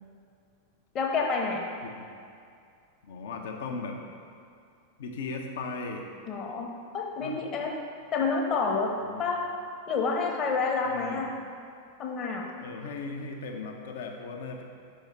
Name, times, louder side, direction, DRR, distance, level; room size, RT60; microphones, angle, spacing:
voice 1, 0.9-1.6 6.3-6.7 6.9-7.7 8.1-8.9 9.2-9.4 9.9-11.3 12.0-12.4, left 4 dB, 30° left, 1 dB, 0.9 m, -28 dB
voice 2, 3.1-4.0 5.0-6.0 7.2-7.5 9.0-9.3 10.9-11.3 12.6-14.6, left 4 dB, 60° left, 3 dB, 0.7 m, -37 dB
5.5 x 4.5 x 5.1 m, 2.4 s
figure-of-eight pair, 90°, 0 cm